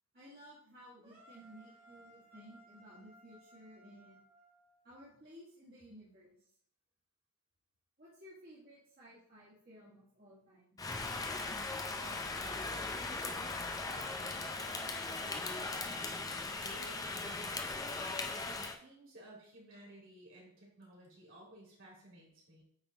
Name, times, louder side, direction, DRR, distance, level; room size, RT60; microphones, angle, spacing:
voice 1, 0.1-4.2 4.8-6.5 8.0-10.7, equal, 45° right, -9 dB, 1.8 m, -56 dB
sound 1, 1.0-5.1, right 1 dB, 25° right, 1.5 m, -61 dB
Rain, 10.8-18.8, left 3 dB, 15° left, 0.4 m, -39 dB
voice 2, 11.9-15.9 16.5-17.7 18.5-22.6, right 1 dB, 60° right, -4 dB, 3.1 m, -56 dB
8.8 x 3.7 x 4.0 m, 0.64 s
head